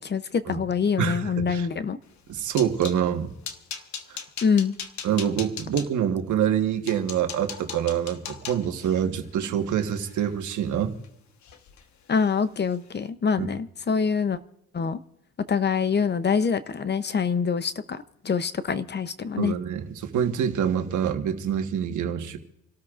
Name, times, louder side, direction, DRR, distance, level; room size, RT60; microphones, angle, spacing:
voice 1, 0.0-2.0 4.4-4.8 12.1-14.4 14.7-15.0 15.5-19.5, left 6 dB, 35° left, 13 dB, 0.8 m, -25 dB
voice 2, 1.0-1.7 2.3-3.3 4.1-4.2 5.0-10.9 13.4-13.5 19.4-22.4, right 9 dB, 75° right, 6 dB, 1.5 m, -26 dB
sound 1, 2.1-3.0 3.4-5.9 6.5-6.6 6.9-11.1 11.4-11.8 12.1-12.3 12.7-12.9, left 7 dB, 70° left, 1.3 m, -39 dB
28.0 x 13.0 x 2.5 m, 0.81 s
cardioid pair, 90°, 30 cm